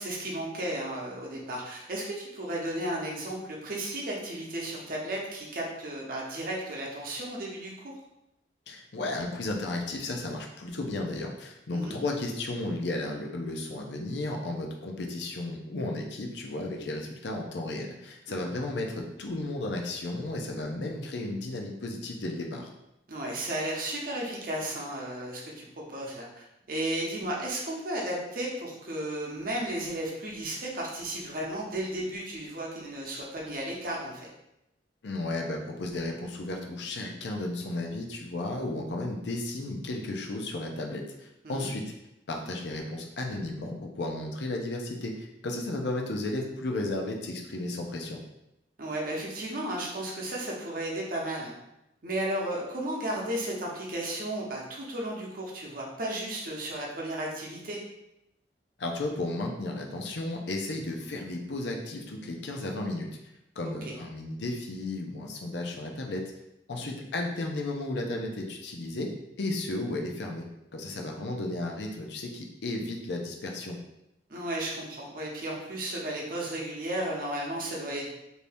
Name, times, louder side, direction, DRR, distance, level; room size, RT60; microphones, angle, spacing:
voice 1, 0.0-7.9 11.7-12.0 18.3-18.4 23.1-34.3 41.4-41.7 48.8-51.6 52.0-57.8 63.6-63.9 66.8-66.9 74.3-78.1, right 1 dB, 50° right, -2 dB, 0.7 m, -34 dB
voice 2, 8.7-22.7 35.0-41.8 42.3-48.2 58.8-63.1 63.6-66.2 66.7-69.1 69.4-70.5 70.7-73.8, left 2 dB, 70° left, 1 dB, 0.5 m, -34 dB
2.7 x 2.7 x 3.3 m, 0.87 s
head